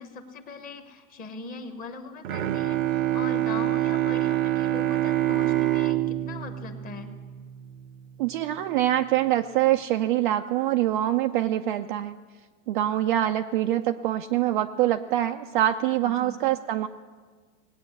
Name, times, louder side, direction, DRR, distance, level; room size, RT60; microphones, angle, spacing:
voice 1, 0.0-7.1 16.0-16.4, left 4 dB, 20° left, 7 dB, 1.1 m, -40 dB
Bowed string instrument, 2.2-7.9, right 14 dB, 75° right, 0.9 m, -26 dB
voice 2, 8.2-12.2 12.7-16.9, right 13 dB, 40° right, 6 dB, 0.4 m, -24 dB
19.0 x 8.7 x 8.1 m, 1.5 s
supercardioid pair, 150°, 42 cm